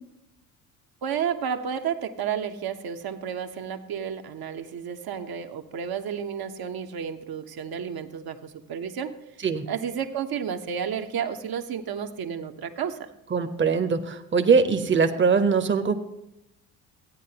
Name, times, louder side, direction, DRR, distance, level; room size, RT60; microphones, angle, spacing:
voice 1, 1.0-9.2 9.7-13.1, right 7 dB, 50° right, 6 dB, 1.2 m, -31 dB
voice 2, 13.3-15.9, right 5 dB, 25° right, 7 dB, 1.1 m, -22 dB
15.5 x 9.2 x 2.9 m, 0.85 s
hypercardioid pair, 65°, 48 cm